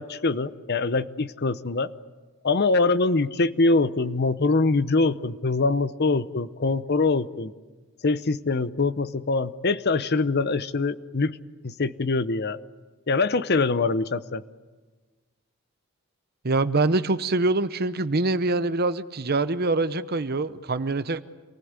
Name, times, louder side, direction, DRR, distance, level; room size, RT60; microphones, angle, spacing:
voice 1, 0.0-1.9 2.4-7.5 8.0-11.4 11.6-12.6 13.1-14.4, left 3 dB, 50° left, 0.8 m, -24 dB
voice 2, 16.4-21.2, right 2 dB, 45° right, 0.9 m, -24 dB
27.5 x 19.5 x 9.7 m
head